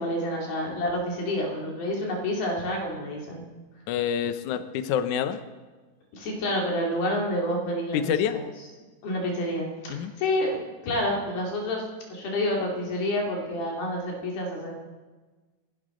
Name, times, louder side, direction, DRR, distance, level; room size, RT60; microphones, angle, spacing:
voice 1, 0.0-3.4 6.1-8.4 9.0-10.6 10.8-14.7, left 1 dB, 90° left, -1 dB, 4.6 m, -29 dB
voice 2, 3.9-5.4 7.9-8.4 9.9-10.1, left 9 dB, 75° left, 10 dB, 1.9 m, -27 dB
28.0 x 11.0 x 3.8 m, 1.3 s
omnidirectional pair, 4.1 m